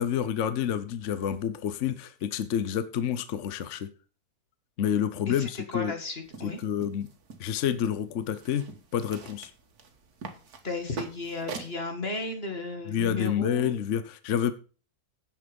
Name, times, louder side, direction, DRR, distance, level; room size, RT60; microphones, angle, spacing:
voice 1, 0.0-3.9 4.8-5.9 6.4-7.1 7.4-9.5 12.9-14.5, left 9 dB, 60° left, 13 dB, 1.0 m, -29 dB
voice 2, 5.3-6.6 10.6-13.7, left 3 dB, 40° left, 6 dB, 2.2 m, -34 dB
sound 1, 6.2-11.8, right 5 dB, 80° right, 1.9 m, -44 dB
9.9 x 7.7 x 5.2 m, 0.37 s
omnidirectional pair, 1.6 m